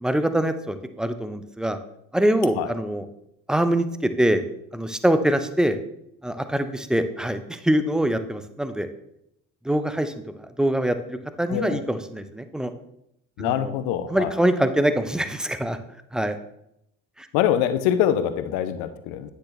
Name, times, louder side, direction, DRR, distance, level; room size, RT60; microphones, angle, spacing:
voice 1, 0.0-1.8 2.1-3.0 3.5-3.9 4.2-4.4 4.7-5.8 6.2-8.9 9.7-10.1 10.6-12.7 13.4-13.7 14.1-15.8 16.1-16.4 17.2-17.3, right 1 dB, ahead, 10 dB, 0.4 m, -24 dB
voice 2, 11.5-11.8 13.4-14.5 17.3-19.3, left 10 dB, 55° left, 11 dB, 0.6 m, -24 dB
9.5 x 4.2 x 3.2 m, 0.79 s
figure-of-eight pair, 50°, 38 cm